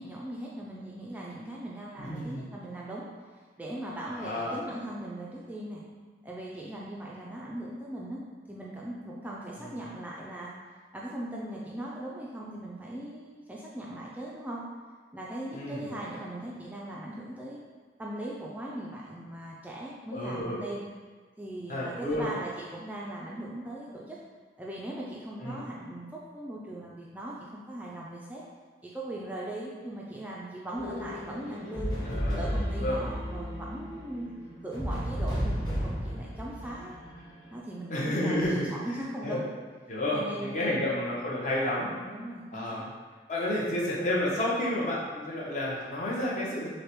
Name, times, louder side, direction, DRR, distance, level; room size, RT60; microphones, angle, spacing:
voice 1, 0.0-3.1 3.6-5.8 6.2-8.2 8.5-10.5 10.9-14.6 15.1-17.6 18.0-20.8 21.4-24.2 24.6-28.4 28.8-32.0 32.3-34.3 34.6-37.0 37.5-39.4 40.1-40.9 42.0-42.8, right 1 dB, 10° right, -5 dB, 0.3 m, -39 dB
voice 2, 2.0-2.4 4.1-4.6 9.6-9.7 15.5-16.0 20.1-20.6 21.7-22.3 25.4-25.6 32.1-33.0 37.9-38.7 39.2-39.4 39.9-41.9 42.5-42.8 43.3-46.7, left 1 dB, 45° left, -5 dB, 0.9 m, -30 dB
sound 1, 30.7-37.5, equal, 25° left, 1.1 m, -33 dB
6.2 x 2.2 x 3.0 m, 1.5 s
head